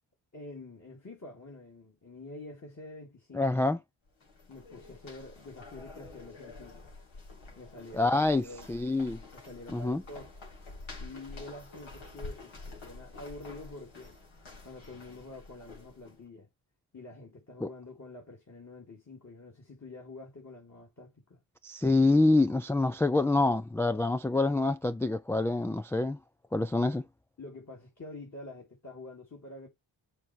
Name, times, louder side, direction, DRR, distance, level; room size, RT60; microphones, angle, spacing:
voice 1, 0.3-3.7 4.5-7.0 7.6-8.7 9.3-10.3 11.0-14.2 14.6-16.5 16.9-21.4 27.4-29.7, left 2 dB, 35° left, 2.6 m, -47 dB
voice 2, 3.3-3.8 7.9-9.2 9.7-10.0 17.6-17.7 21.6-26.2 26.5-27.0, left 2 dB, 5° left, 0.3 m, -26 dB
sound 1, 4.1-16.2, left 3 dB, 75° left, 2.9 m, -48 dB
6.9 x 3.5 x 4.5 m
cardioid pair, 45°, 47 cm